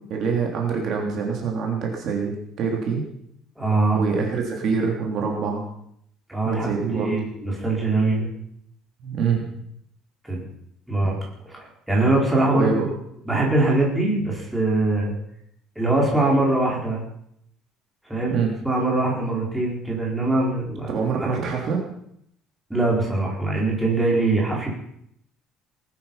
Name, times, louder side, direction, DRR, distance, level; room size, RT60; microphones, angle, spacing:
voice 1, 0.0-3.0 3.9-5.6 6.4-7.1 9.0-9.4 12.5-12.7 18.3-18.5 20.9-21.8, right 5 dB, 45° right, 0 dB, 3.3 m, -25 dB
voice 2, 3.6-4.0 6.3-8.3 10.2-10.4 10.9-11.2 11.4-12.9 13.3-15.1 15.7-17.0 18.1-18.4 18.6-20.9 21.2-21.4 22.7-24.7, right 2 dB, 5° right, -3 dB, 5.0 m, -22 dB
20.0 x 12.5 x 5.8 m, 0.72 s
cardioid pair, 170°, 0 cm